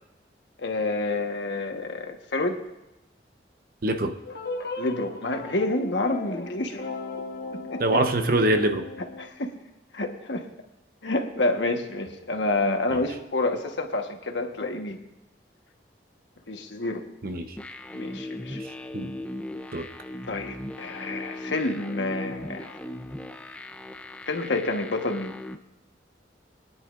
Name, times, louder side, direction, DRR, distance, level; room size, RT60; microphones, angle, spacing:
voice 1, 0.6-2.6 4.8-6.8 7.5-8.0 9.0-9.5 9.9-10.5 11.0-15.0 16.5-17.0 17.9-18.6 20.3-22.8 24.3-25.3, left 2 dB, 85° left, 4 dB, 1.3 m, -28 dB
voice 2, 3.8-4.2 7.8-8.9 17.2-17.6 18.5-18.6 18.9-19.1 19.7-19.9, right 1 dB, 55° right, 7 dB, 0.9 m, -24 dB
sound 1, 4.3-9.3, left 3 dB, 60° left, 1.2 m, -36 dB
sound 2, 17.6-25.5, left 1 dB, 5° left, 0.5 m, -38 dB
23.0 x 10.5 x 2.5 m, 0.93 s
head